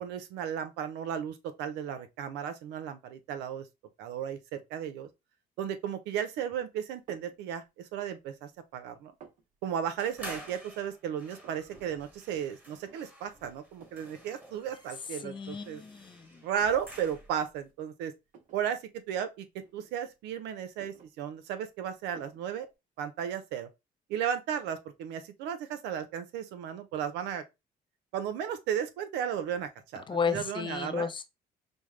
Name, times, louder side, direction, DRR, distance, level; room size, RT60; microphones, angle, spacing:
voice 1, 0.0-3.7 4.0-5.1 5.6-9.1 9.6-15.8 16.4-18.1 18.5-18.8 19.1-22.7 23.0-23.7 24.1-27.4 28.1-31.1, right 9 dB, 90° right, 0.7 m, -35 dB
sound 1, 7.1-7.4 7.9-8.6 8.9-9.4 10.2-10.6 10.9-11.0 11.2-11.8 12.2-12.3 12.8-13.3 13.8-14.1 14.9-15.0 15.5-16.9 17.3-17.5 18.3-18.6 19.6-20.3 20.6-21.7 22.1-22.5, right 6 dB, 50° right, 0.9 m, -55 dB
sound 2, 10.0-17.5, equal, 10° right, 1.2 m, -50 dB
voice 2, 15.2-16.4 30.1-31.2, left 6 dB, 30° left, 0.5 m, -33 dB
5.4 x 2.1 x 3.2 m
cardioid pair, 110°, 17 cm